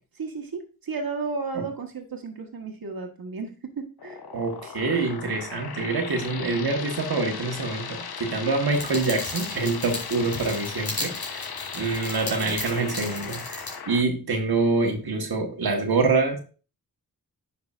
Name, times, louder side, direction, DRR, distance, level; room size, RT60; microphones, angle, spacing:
voice 1, 0.2-4.2, right 4 dB, 70° right, 2 dB, 1.4 m, -33 dB
sound 1, 4.0-14.0, left 6 dB, 85° left, 0.9 m, -37 dB
voice 2, 4.3-11.4 11.7-16.4, right 3 dB, 90° right, 2 dB, 1.4 m, -26 dB
sound 2, 8.7-13.7, left 2 dB, 50° left, 3.7 m, -36 dB
9.8 x 5.8 x 2.5 m, 0.35 s
wide cardioid pair, 70°, 36 cm